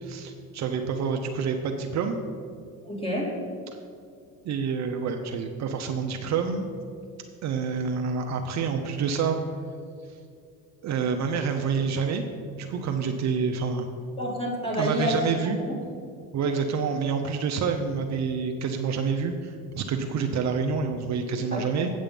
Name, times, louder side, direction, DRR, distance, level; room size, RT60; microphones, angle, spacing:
voice 1, 0.0-2.2 4.4-6.6 7.4-9.4 10.8-12.2 12.5-13.8 14.8-15.6 16.3-21.9, right 5 dB, 50° right, 4 dB, 0.7 m, -28 dB
voice 2, 2.8-3.3 14.2-15.3 15.7-15.8 21.5-21.8, equal, 15° left, -3 dB, 2.6 m, -28 dB
8.3 x 7.5 x 5.3 m, 2.3 s
cardioid pair, 110°, 36 cm